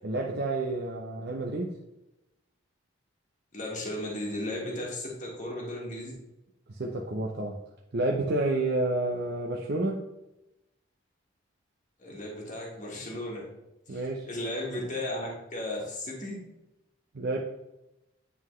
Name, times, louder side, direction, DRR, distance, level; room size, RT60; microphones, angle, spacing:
voice 1, 0.0-1.8 6.7-7.6 7.9-10.1 13.9-14.3 17.1-17.4, right 2 dB, 50° right, -1 dB, 0.6 m, -30 dB
voice 2, 3.5-6.1 12.0-13.5 13.9-16.4, left 1 dB, 35° left, -2 dB, 1.5 m, -35 dB
9.4 x 3.8 x 3.1 m, 0.93 s
head